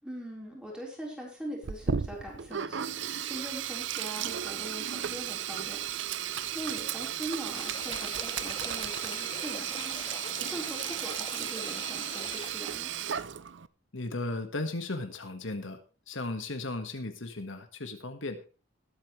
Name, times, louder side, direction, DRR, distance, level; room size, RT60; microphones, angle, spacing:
voice 1, 0.0-2.8 3.1-5.8 6.5-12.9, right 1 dB, 5° right, -2 dB, 4.2 m, -41 dB
Sink (filling or washing), 1.6-13.7, right 9 dB, 65° right, 0.6 m, -34 dB
sound 1, 7.5-12.5, left 5 dB, 25° left, 0.9 m, -43 dB
voice 2, 13.9-18.5, left 2 dB, 70° left, 7 dB, 1.6 m, -36 dB
20.0 x 8.8 x 3.2 m, 0.32 s
head